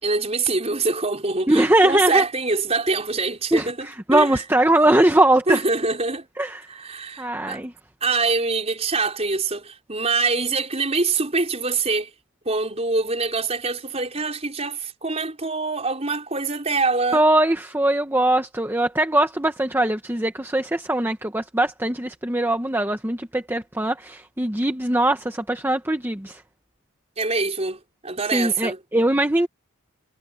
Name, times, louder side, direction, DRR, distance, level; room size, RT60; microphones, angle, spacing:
voice 1, 0.0-4.4 5.5-6.3 6.7-7.6 8.0-12.1 12.4-17.2 27.2-28.8, right 3 dB, 30° right, 4.9 m, -24 dB
voice 2, 1.5-2.2 3.5-5.6 6.4-6.6 7.2-7.7 17.1-26.4 28.3-29.5, right 1 dB, 10° right, 1.0 m, -21 dB
head